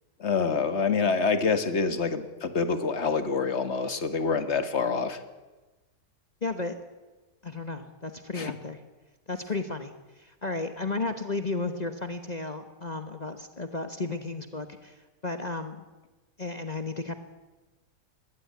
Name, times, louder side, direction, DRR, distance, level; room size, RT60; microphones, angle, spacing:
voice 1, 0.2-5.2 8.4-8.5, left 5 dB, 50° left, 10 dB, 1.7 m, -26 dB
voice 2, 6.4-6.8 7.4-8.8 9.3-15.9 16.4-17.1, left 3 dB, 30° left, 8 dB, 1.2 m, -34 dB
21.0 x 16.0 x 9.4 m, 1.2 s
omnidirectional pair, 1.6 m